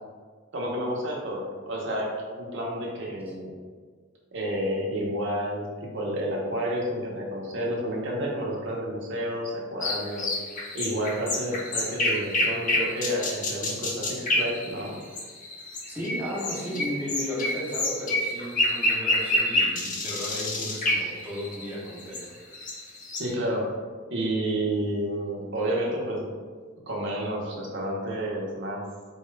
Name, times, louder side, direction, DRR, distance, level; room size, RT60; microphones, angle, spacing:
voice 1, 0.5-3.5 4.3-5.7 5.9-10.4 10.7-14.9 23.2-23.7 24.1-26.3 26.9-28.8, right 1 dB, 65° right, -2 dB, 0.9 m, -30 dB
sound 1, 9.8-23.3, left 1 dB, 40° left, 0.7 m, -28 dB
voice 2, 15.9-22.3, left 1 dB, 10° right, -6 dB, 0.9 m, -34 dB
4.2 x 2.4 x 3.2 m, 1.5 s
head